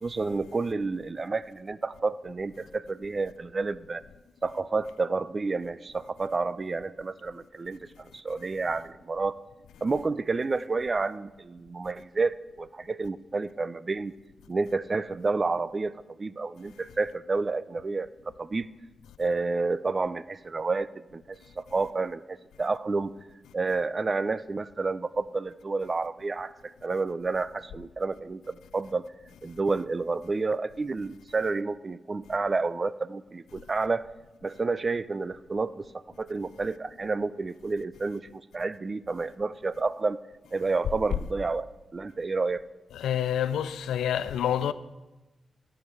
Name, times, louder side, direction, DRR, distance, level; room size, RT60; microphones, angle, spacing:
voice 1, 0.0-4.0 4.4-9.4 9.8-14.1 14.5-15.9 16.2-18.1 18.4-18.7 19.2-21.2 21.6-23.1 23.5-29.0 29.4-34.1 34.4-40.2 40.5-42.6, right 3 dB, 45° right, 0.4 m, -30 dB
voice 2, 42.9-44.7, left 10 dB, 85° left, 0.3 m, -27 dB
12.0 x 4.7 x 6.7 m
supercardioid pair, 40°, 0 cm